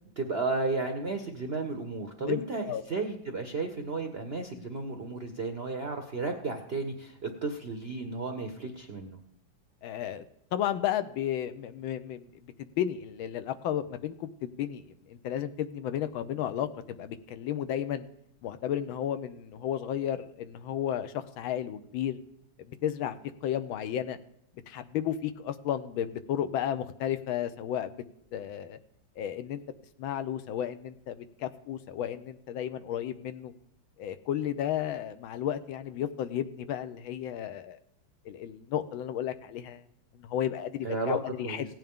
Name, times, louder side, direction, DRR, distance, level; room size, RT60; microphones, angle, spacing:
voice 1, 0.2-9.2 40.8-41.7, right 3 dB, 60° right, 5 dB, 0.6 m, -33 dB
voice 2, 2.2-2.8 9.8-10.2 10.5-12.3 12.6-18.1 18.4-22.2 22.6-23.1 23.4-24.2 24.7-28.0 28.3-28.8 29.2-29.6 30.0-33.5 34.0-37.8 38.2-39.8 40.1-41.6, left 10 dB, 90° left, 10 dB, 1.5 m, -33 dB
17.0 x 9.1 x 3.6 m, 0.76 s
omnidirectional pair, 2.1 m